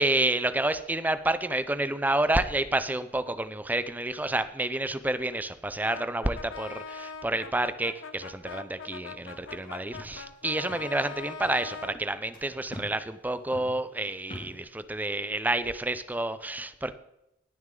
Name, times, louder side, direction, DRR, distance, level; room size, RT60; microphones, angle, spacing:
voice 1, 0.0-16.9, right 2 dB, 10° right, 12 dB, 0.5 m, -29 dB
Brass instrument, 5.8-12.0, left 5 dB, 85° left, 1.0 m, -42 dB
sound 1, 9.2-9.7 9.9-10.2 10.5-10.9 11.3-11.7 12.3-12.5 12.7-13.0 13.3-14.6, equal, 45° left, 3.5 m, -44 dB
19.5 x 6.5 x 3.8 m, 0.84 s
head